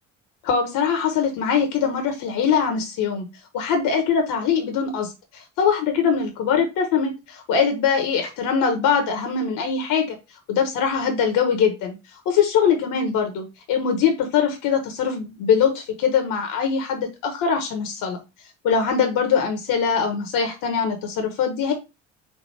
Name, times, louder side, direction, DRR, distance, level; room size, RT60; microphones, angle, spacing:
voice 1, 0.4-3.2 3.5-10.2 10.5-11.9 12.2-18.2 18.6-21.7, left 6 dB, 60° left, 5 dB, 1.1 m, -22 dB
4.3 x 2.6 x 4.6 m, 0.26 s
hypercardioid pair, 55°, 37 cm